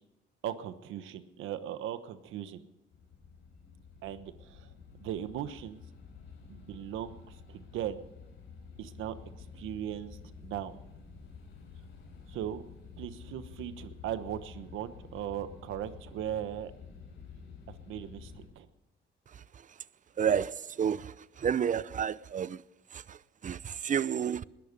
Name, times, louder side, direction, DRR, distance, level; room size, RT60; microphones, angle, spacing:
voice 1, 0.4-2.6 4.0-4.7 5.0-5.8 6.5-8.1 8.8-10.8 12.3-12.6 13.0-16.7 17.7-18.7, right 11 dB, 90° right, 1.1 m, -38 dB
sound 1, 2.9-18.5, left 5 dB, 80° left, 6.0 m, -50 dB
voice 2, 20.2-20.5 20.8-21.1 21.4-22.6 23.4-24.4, right 8 dB, 40° right, 0.6 m, -29 dB
20.5 x 12.0 x 5.3 m
cardioid pair, 90°, 20 cm